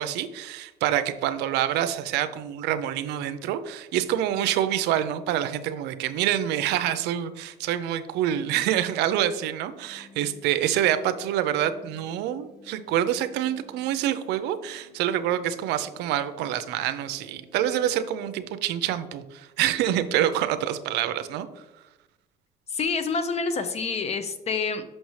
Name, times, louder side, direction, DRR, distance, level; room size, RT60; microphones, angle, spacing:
voice 1, 0.0-21.5, right 11 dB, 90° right, 11 dB, 0.5 m, -26 dB
sound 1, 9.7-18.4, left 1 dB, 5° right, 1.3 m, -54 dB
voice 2, 22.7-24.8, left 4 dB, 40° left, 10 dB, 0.7 m, -27 dB
6.3 x 5.3 x 3.1 m, 1.0 s
cardioid pair, 110°, 17 cm